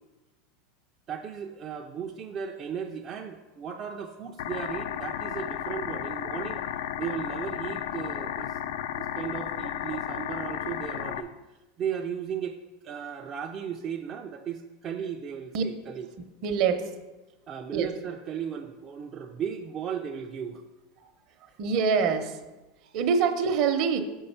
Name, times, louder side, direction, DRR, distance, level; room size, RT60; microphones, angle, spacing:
voice 1, 1.1-6.6 7.0-8.6 9.0-11.3 11.8-12.6 12.8-16.1 17.5-20.6 21.3-21.4, right 8 dB, 30° right, 1 dB, 0.4 m, -35 dB
sound 1, 4.4-11.2, left 10 dB, 75° left, 0.4 m, -33 dB
voice 2, 16.4-16.9 17.7-17.9 21.0-21.1 21.6-22.4 22.9-24.0, right 6 dB, 50° right, 7 dB, 0.8 m, -25 dB
6.4 x 5.5 x 5.5 m, 1.1 s
supercardioid pair, 150°, 0 cm